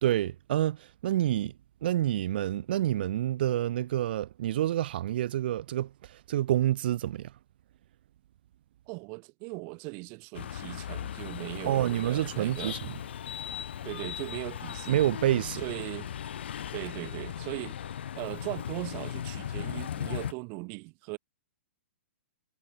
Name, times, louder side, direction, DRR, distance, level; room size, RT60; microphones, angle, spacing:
voice 1, 0.0-1.5 1.8-7.3 11.6-13.0 14.9-15.6, right 12 dB, 55° right, 1.0 m, -28 dB
voice 2, 8.9-12.8 13.8-15.0 15.6-16.1 16.7-17.8 18.1-21.2, right 35 dB, 35° right, 0.5 m, -39 dB
sound 1, 10.3-20.3, left 9 dB, 65° left, 1.4 m, -38 dB
hypercardioid pair, 120°, 6 cm